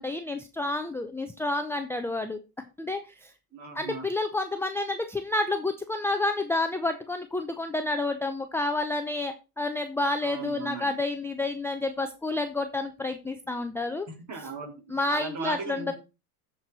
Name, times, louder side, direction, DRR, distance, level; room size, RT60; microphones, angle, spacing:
voice 1, 0.0-2.4 2.8-3.3 3.7-14.1 14.9-15.9, left 2 dB, 5° left, 6 dB, 0.6 m, -29 dB
voice 2, 3.5-4.1 10.2-10.9 14.1-15.9, right 4 dB, 35° right, 2 dB, 4.0 m, -38 dB
13.5 x 4.6 x 4.1 m, 0.29 s
hypercardioid pair, 95°, 46 cm